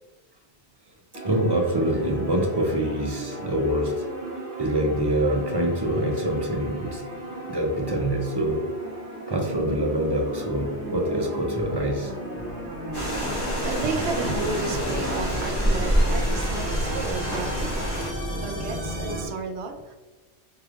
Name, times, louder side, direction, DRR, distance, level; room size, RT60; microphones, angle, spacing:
sound 1, 1.1-19.3, right 1 dB, 50° right, 1.3 m, -34 dB
voice 1, 1.2-3.9 4.6-7.0 7.5-8.6 9.3-12.1, right 1 dB, 30° right, 1 dB, 0.5 m, -25 dB
sound 2, 6.4-15.3, left 1 dB, 65° left, 1.0 m, -42 dB
sound 3, 12.9-18.1, equal, 20° left, 1.3 m, -27 dB
voice 2, 13.1-19.9, right 3 dB, 75° right, 4 dB, 0.9 m, -33 dB
4.6 x 3.3 x 2.4 m, 1.2 s
omnidirectional pair, 1.2 m